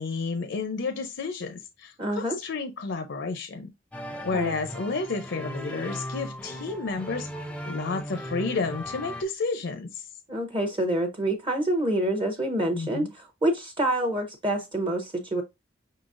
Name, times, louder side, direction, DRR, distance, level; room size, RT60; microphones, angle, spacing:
voice 1, 0.0-3.7 4.2-7.3 7.6-10.1 12.7-13.1, left 4 dB, 65° left, 0.6 m, -31 dB
voice 2, 2.0-2.4 4.3-4.5 10.3-15.4, right 1 dB, 25° right, 0.7 m, -27 dB
sound 1, 3.9-9.2, equal, 5° left, 0.5 m, -37 dB
5.4 x 3.9 x 2.5 m
head